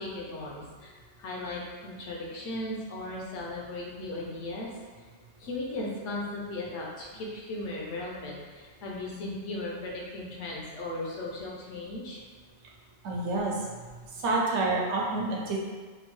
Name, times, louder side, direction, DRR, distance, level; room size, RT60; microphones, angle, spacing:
voice 1, 0.0-4.7 5.4-12.2, left 2 dB, 85° left, -3 dB, 1.0 m, -37 dB
voice 2, 13.0-13.6 14.2-15.6, right 2 dB, 75° right, -2 dB, 0.9 m, -28 dB
3.0 x 2.2 x 2.9 m, 1.5 s
omnidirectional pair, 1.2 m